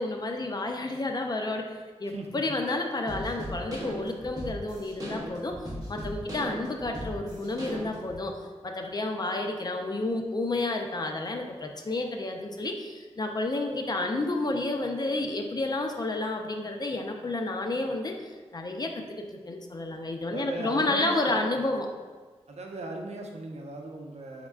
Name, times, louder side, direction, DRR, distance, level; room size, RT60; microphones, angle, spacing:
voice 1, 0.0-1.6 2.0-5.5 5.9-8.3 8.6-18.1 18.5-21.9, left 2 dB, 35° left, 3 dB, 0.4 m, -30 dB
voice 2, 2.1-2.6 20.3-21.4 22.5-24.5, right 2 dB, 75° right, 1 dB, 0.6 m, -38 dB
sound 1, 3.1-8.2, equal, 35° right, 0.9 m, -37 dB
5.2 x 3.6 x 2.3 m, 1.4 s
wide cardioid pair, 125°, 11 cm